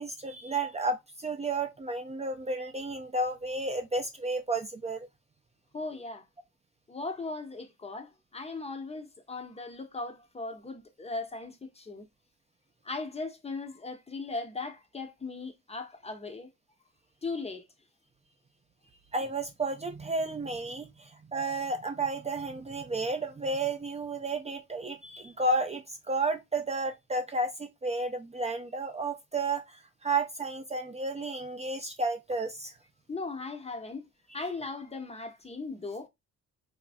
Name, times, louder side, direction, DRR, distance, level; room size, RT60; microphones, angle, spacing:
voice 1, 0.0-5.1 19.1-29.6 30.0-32.7, right 2 dB, 20° right, 0.4 m, -32 dB
voice 2, 5.7-6.2 6.9-12.0 12.8-16.5 17.2-17.7 33.1-34.1 34.3-36.1, left 3 dB, 20° left, 0.6 m, -38 dB
3.0 x 2.4 x 2.4 m
cardioid pair, 90°, 30 cm